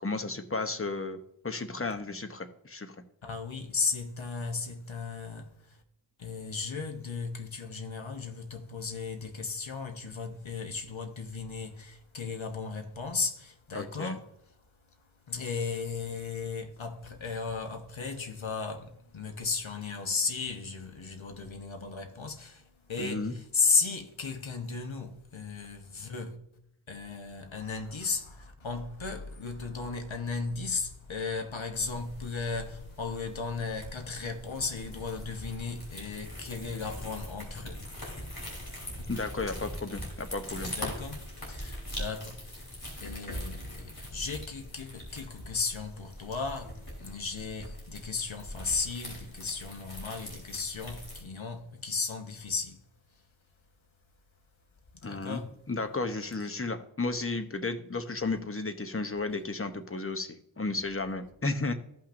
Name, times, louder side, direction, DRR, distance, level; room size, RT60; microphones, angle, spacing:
voice 1, 0.0-2.9 13.7-14.2 23.0-23.3 39.1-40.7 55.0-55.4 55.7-61.7, left 3 dB, 30° left, 0.8 m, -33 dB
voice 2, 3.2-5.8 6.2-14.3 15.3-26.4 26.9-37.9 38.6-39.1 40.6-52.8 54.9-55.5 56.4-56.5, left 4 dB, 75° left, 1.1 m, -35 dB
sound 1, 31.7-51.2, left 1 dB, 50° left, 3.6 m, -42 dB
15.0 x 5.8 x 2.6 m
wide cardioid pair, 45°, 47 cm